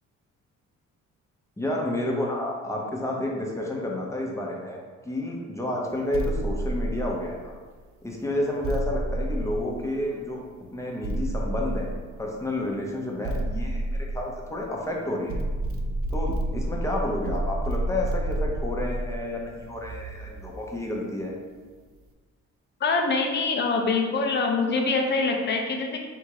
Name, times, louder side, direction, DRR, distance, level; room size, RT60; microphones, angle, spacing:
voice 1, 1.6-7.5 8.0-10.4 10.7-11.9 12.2-15.4 16.1-21.3, left 1 dB, 10° left, -2 dB, 1.0 m, -30 dB
sound 1, 6.1-7.6 8.6-10.2 11.0-12.4 13.2-14.8 15.3-20.6, right 1 dB, 50° right, 0.6 m, -30 dB
voice 2, 22.8-26.1, left 3 dB, 35° left, 2 dB, 0.7 m, -24 dB
3.6 x 2.7 x 4.7 m, 1.5 s
cardioid pair, 90°, 30 cm